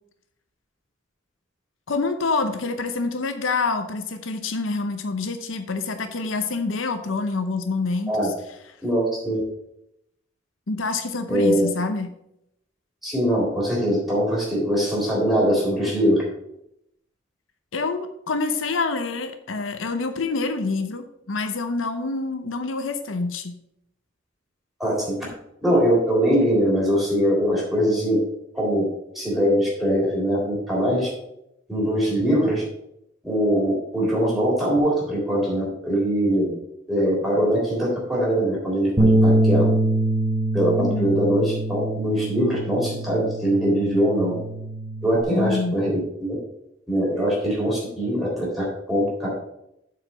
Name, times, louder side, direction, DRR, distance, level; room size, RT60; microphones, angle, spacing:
voice 1, 1.9-8.3 10.7-12.1 17.7-23.6 40.8-41.1 45.3-45.7, left 3 dB, 80° left, 8 dB, 0.8 m, -27 dB
voice 2, 8.8-9.4 11.3-11.7 13.0-16.2 24.8-25.1 25.6-28.2 28.5-28.9 29.2-31.1 31.7-32.6 33.2-36.5 36.9-39.7 40.5-44.4 45.0-46.4 46.9-49.3, equal, ahead, -5 dB, 3.5 m, -22 dB
Bass guitar, 39.0-45.2, right 1 dB, 25° right, 1.1 m, -23 dB
7.8 x 4.8 x 6.2 m, 0.80 s
head